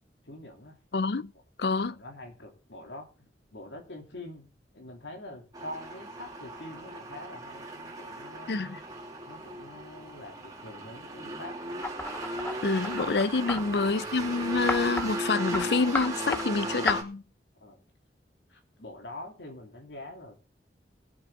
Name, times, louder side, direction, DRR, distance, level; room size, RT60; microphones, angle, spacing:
voice 1, 0.2-0.8 1.9-3.1 3.5-8.5 9.3-11.6 13.5-13.6 17.6-17.8 18.5-20.3, left 1 dB, 85° left, 3.3 m, -45 dB
voice 2, 0.9-1.3 1.6-2.0 8.5-8.8 12.6-17.2, left 4 dB, 65° left, 0.6 m, -27 dB
sound 1, 5.5-17.0, right 1 dB, 20° right, 2.9 m, -37 dB
sound 2, 11.8-13.6 14.7-15.1 15.5-15.7 16.0-16.5 16.9-17.0, left 2 dB, 10° left, 0.8 m, -32 dB
20.5 x 7.9 x 3.9 m
head